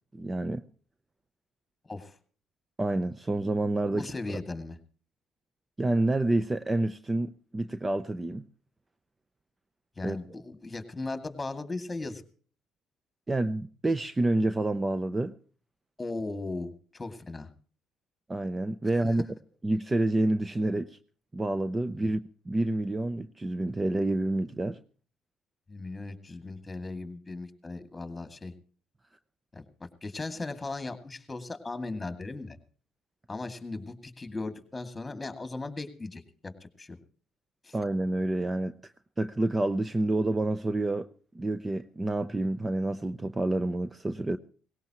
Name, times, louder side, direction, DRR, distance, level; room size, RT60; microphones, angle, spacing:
voice 1, 0.1-0.6 2.8-4.0 5.8-8.5 10.0-10.2 13.3-15.3 18.3-19.2 19.6-21.0 21.3-22.2 22.5-24.8 37.7-38.7 39.2-41.1 41.3-44.4, right 2 dB, 20° right, 0.6 m, -28 dB
voice 2, 1.8-2.2 3.9-4.8 10.0-12.2 16.0-17.5 18.9-19.2 22.0-22.1 25.7-28.5 29.5-32.6 33.3-37.0 37.6-37.8, left 3 dB, 20° left, 2.3 m, -37 dB
18.5 x 17.5 x 3.0 m
supercardioid pair, 70°, 0 cm